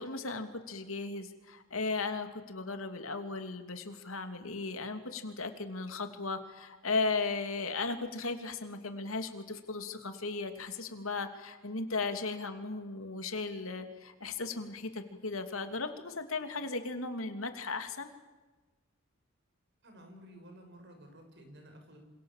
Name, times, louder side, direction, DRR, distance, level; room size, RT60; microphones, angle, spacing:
voice 1, 0.0-18.1, left 3 dB, 85° left, 7 dB, 3.1 m, -36 dB
voice 2, 19.8-22.0, equal, 55° right, 5 dB, 7.2 m, -53 dB
27.5 x 27.0 x 7.6 m, 1.2 s
head